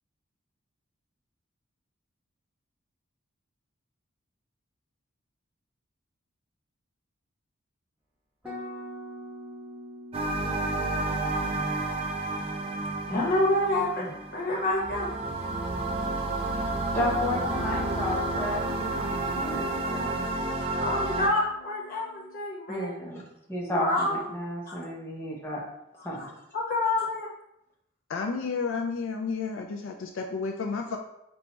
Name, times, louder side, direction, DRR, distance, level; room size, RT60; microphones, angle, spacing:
sound 1, 8.4-15.1 17.5-22.4, left 2 dB, 5° right, 1.0 m, -45 dB
sound 2, 10.1-21.3, right 2 dB, 30° right, 0.3 m, -30 dB
voice 1, 13.1-15.1 20.6-22.9 23.7-24.2 24.7-24.8 26.2-26.3 26.5-27.3, left 1 dB, 45° left, -2 dB, 1.0 m, -28 dB
voice 2, 16.9-20.8 22.7-23.2 23.5-25.6 26.0-26.3, left 1 dB, 10° left, -4 dB, 0.6 m, -33 dB
voice 3, 28.1-31.0, left 4 dB, 70° left, 2 dB, 0.4 m, -31 dB
4.2 x 2.3 x 4.0 m, 0.81 s
head